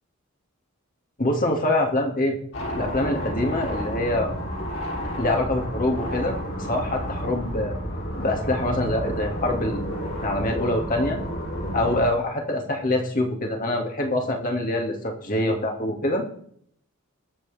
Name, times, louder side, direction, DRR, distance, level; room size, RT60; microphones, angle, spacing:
voice 1, 1.2-2.3 2.8-4.3 5.2-6.4 6.7-7.8 8.2-9.9 10.2-11.2 11.7-16.2, left 1 dB, 40° left, 2 dB, 2.5 m, -25 dB
sound 1, 2.5-12.0, equal, 65° left, 6.5 m, -31 dB
22.0 x 7.7 x 3.6 m, 0.65 s
head